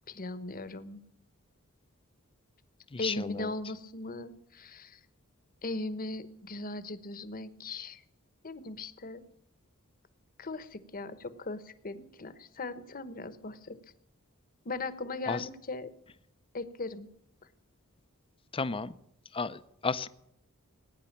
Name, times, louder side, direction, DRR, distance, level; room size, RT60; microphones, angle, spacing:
voice 1, 0.1-1.0 3.0-5.0 5.6-8.0 8.4-9.2 10.4-13.8 14.6-15.9 16.5-17.1, left 2 dB, 40° left, 14 dB, 1.1 m, -38 dB
voice 2, 2.9-3.5 15.3-15.5 18.5-18.9 19.3-20.1, left 4 dB, 25° left, 14 dB, 0.6 m, -33 dB
18.5 x 9.5 x 7.3 m, 0.78 s
head